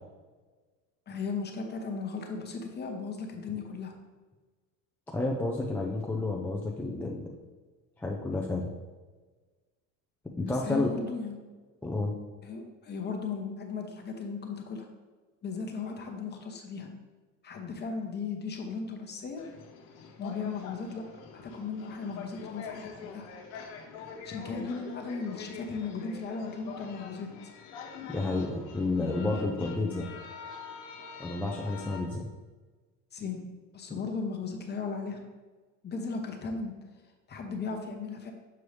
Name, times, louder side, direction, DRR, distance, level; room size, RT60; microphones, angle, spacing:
voice 1, 1.1-3.9 10.5-11.4 12.4-14.9 15.4-16.9 17.4-19.4 20.2-21.0 21.3-23.3 24.2-27.3 33.1-33.5 33.7-35.2 35.8-36.7 37.3-38.3, left 4 dB, 30° left, 3 dB, 0.9 m, -36 dB
voice 2, 5.1-7.3 8.0-8.7 10.4-10.9 11.8-12.2 28.1-30.1 31.2-32.3, left 2 dB, 5° left, -2 dB, 0.4 m, -30 dB
sound 1, 19.4-32.0, left 5 dB, 80° left, 1.0 m, -45 dB
6.9 x 4.6 x 3.2 m, 1.3 s
cardioid pair, 125°, 37 cm